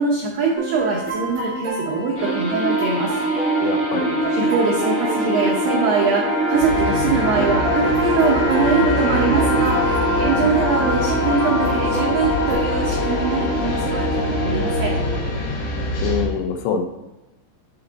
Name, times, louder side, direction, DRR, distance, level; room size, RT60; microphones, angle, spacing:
voice 1, 0.0-3.2 4.4-15.0, right 4 dB, 85° right, -1 dB, 2.0 m, -23 dB
sound 1, 0.5-12.5, right 3 dB, 50° right, 3.6 m, -30 dB
sound 2, 2.1-15.2, equal, 40° left, 2.7 m, -23 dB
voice 2, 3.6-4.2 16.0-16.8, left 7 dB, 80° left, 5 dB, 2.8 m, -24 dB
sound 3, 6.5-16.2, left 1 dB, 55° left, 2.7 m, -26 dB
6.9 x 5.6 x 3.9 m, 0.97 s
omnidirectional pair, 5.2 m